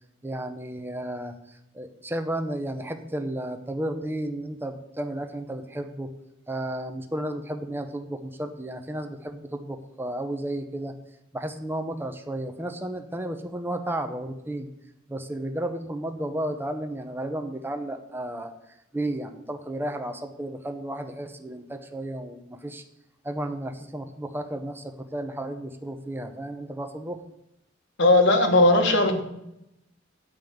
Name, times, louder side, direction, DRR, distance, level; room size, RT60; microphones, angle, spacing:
voice 1, 0.2-6.1 6.5-10.9 11.3-14.7 15.1-18.5 18.9-22.8 23.2-27.2, right 1 dB, 10° right, 6 dB, 0.9 m, -33 dB
voice 2, 28.0-29.2, left 2 dB, 65° left, 5 dB, 1.6 m, -18 dB
9.0 x 5.3 x 7.8 m, 0.84 s
head